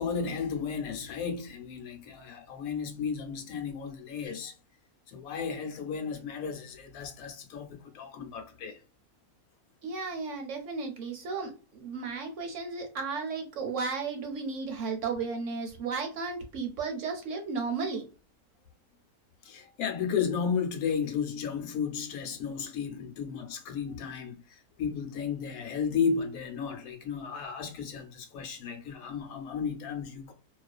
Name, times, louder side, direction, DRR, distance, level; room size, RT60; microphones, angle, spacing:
voice 1, 0.0-4.5 5.1-8.8 19.4-30.3, left 6 dB, 75° left, 1.0 m, -33 dB
voice 2, 9.8-18.1, right 4 dB, 65° right, 0.9 m, -34 dB
2.4 x 2.4 x 2.2 m
omnidirectional pair, 1.6 m